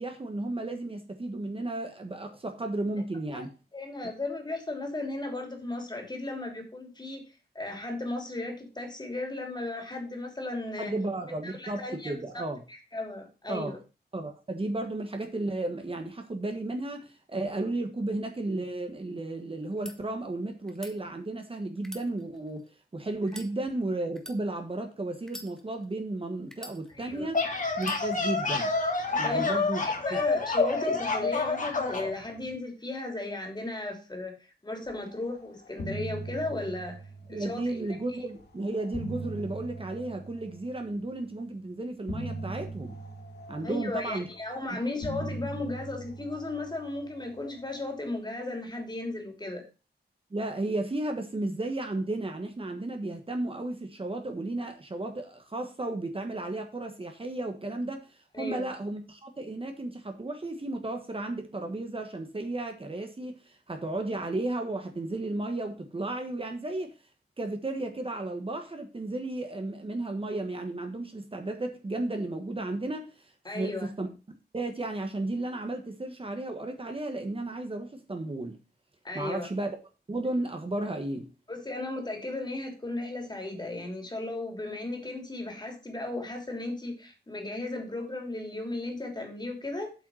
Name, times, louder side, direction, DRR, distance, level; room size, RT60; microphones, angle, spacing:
voice 1, 0.0-3.5 4.0-4.1 10.8-12.6 13.5-13.7 14.1-27.4 27.8-28.7 29.1-29.8 30.1-30.2 37.3-43.0 43.5-44.3 44.7-44.8 50.3-66.9 67.4-74.1 74.5-78.6 79.1-79.8 80.1-81.3, right 2 dB, 35° right, 1.5 m, -34 dB
voice 2, 3.7-7.2 7.5-10.9 11.4-12.4 12.7-13.8 26.9-27.3 29.2-29.4 29.8-37.0 37.3-37.6 43.6-49.6 58.3-58.6 73.4-73.9 79.0-79.5 81.5-89.9, left 2 dB, 25° left, 3.1 m, -35 dB
sound 1, 19.6-20.0 20.7-20.9 21.8-22.7 23.2-23.5 24.1-24.4 25.2-25.9 26.5-27.2 27.8-28.0, left 1 dB, 5° left, 1.6 m, -45 dB
sound 2, 27.1-32.1, left 3 dB, 50° left, 2.4 m, -28 dB
sound 3, 35.1-35.4 35.6-38.0 38.6-41.1 42.1-44.5 45.0-47.6, right 2 dB, 80° left, 2.7 m, -40 dB
8.1 x 5.7 x 6.3 m
wide cardioid pair, 125°, 17 cm